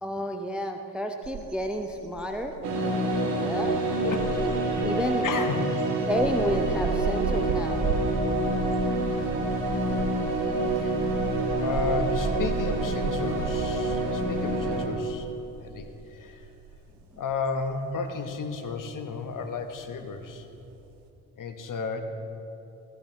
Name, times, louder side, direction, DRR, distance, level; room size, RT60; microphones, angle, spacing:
voice 1, 0.0-2.5 3.3-3.7 4.4-4.5 4.8-5.3 6.1-7.8, equal, ahead, 5 dB, 0.6 m, -30 dB
sound 1, 1.2-21.0, right 6 dB, 60° right, 0.9 m, -35 dB
sound 2, 2.6-14.9, right 1 dB, 80° right, 1.3 m, -27 dB
voice 2, 5.2-5.7 10.8-11.2 11.6-15.3 15.6-16.4 17.2-20.5 21.4-22.0, left 4 dB, 40° left, 7 dB, 1.1 m, -33 dB
15.0 x 11.0 x 2.9 m, 2.8 s
figure-of-eight pair, 45°, 47 cm